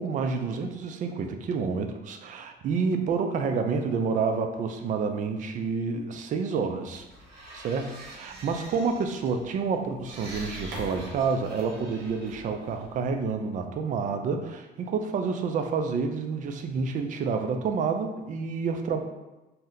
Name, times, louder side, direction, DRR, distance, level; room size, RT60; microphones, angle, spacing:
voice 1, 0.0-7.0 7.5-19.0, right 5 dB, 50° right, 5 dB, 0.4 m, -29 dB
sound 1, 6.9-13.4, right 1 dB, 90° right, 0.9 m, -44 dB
2.7 x 2.1 x 3.7 m, 1.1 s
cardioid pair, 110°, 17 cm